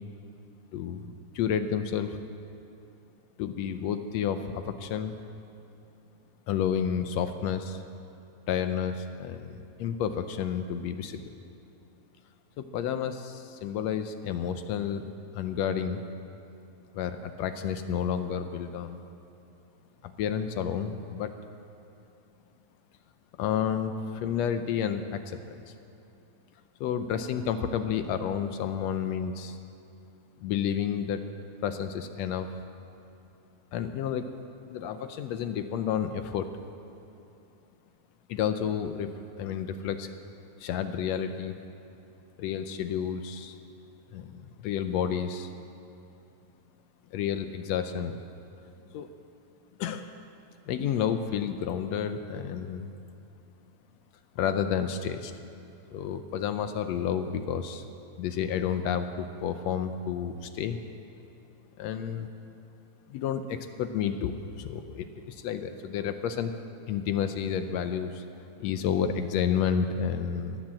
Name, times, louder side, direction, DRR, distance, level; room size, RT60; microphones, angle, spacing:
voice 1, 0.7-2.2 3.4-5.2 6.5-7.8 8.5-11.3 12.6-15.0 15.3-16.0 16.9-19.0 20.0-21.3 23.4-25.4 26.8-29.6 30.4-31.2 31.6-32.5 33.7-34.3 34.7-36.5 38.3-40.1 40.6-41.6 42.4-43.5 44.1-45.5 47.1-48.2 48.9-49.1 49.8-50.1 50.7-52.9 54.4-55.3 55.9-57.8 58.2-60.8 61.8-62.3 63.1-66.5 66.9-68.2 68.6-70.6, left 8 dB, 75° left, 9 dB, 1.7 m, -30 dB
17.0 x 10.5 x 7.6 m, 2.8 s
omnidirectional pair, 3.4 m